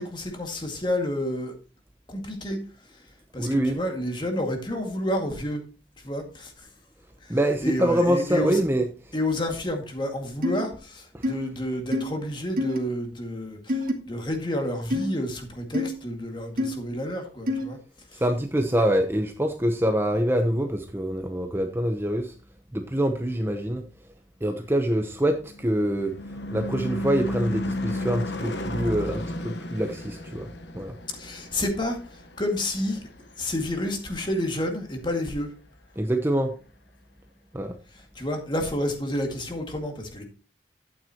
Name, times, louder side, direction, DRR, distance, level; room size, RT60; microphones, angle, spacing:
voice 1, 0.0-1.5 2.1-2.6 2.9-3.0 3.3-5.6 6.0-6.7 7.2-8.6 9.1-17.8 18.1-18.2 31.1-33.0 33.4-35.5 37.9-40.2, left 1 dB, 25° left, 3 dB, 2.0 m, -30 dB
voice 2, 3.4-3.8 7.3-8.8 18.2-22.3 22.7-23.8 24.4-26.1 26.5-30.5 30.7-30.9 36.0-36.5 37.5-37.7, right 1 dB, 15° right, 5 dB, 0.8 m, -25 dB
sound 1, 10.4-10.6 11.2-11.3 11.9-12.0 12.6-12.8 13.7-13.9 14.9-15.1 15.7-15.9 16.6-16.7 17.5-17.6, left 2 dB, 50° right, 1.7 m, -25 dB
Car passing by / Truck / Engine, 25.0-33.7, left 1 dB, 75° left, 1.1 m, -34 dB
11.0 x 9.1 x 2.9 m, 0.34 s
head